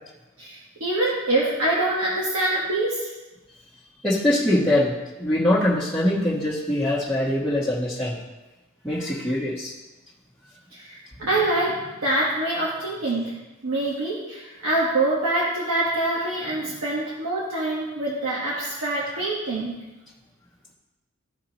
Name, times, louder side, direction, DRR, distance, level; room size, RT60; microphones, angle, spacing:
voice 1, 0.4-3.1 10.7-13.3 13.6-19.7, right 2 dB, 80° right, -6 dB, 1.5 m, -25 dB
voice 2, 4.0-8.2 8.8-9.7, left 1 dB, 5° left, -11 dB, 1.2 m, -23 dB
14.5 x 4.8 x 3.0 m, 1.1 s
head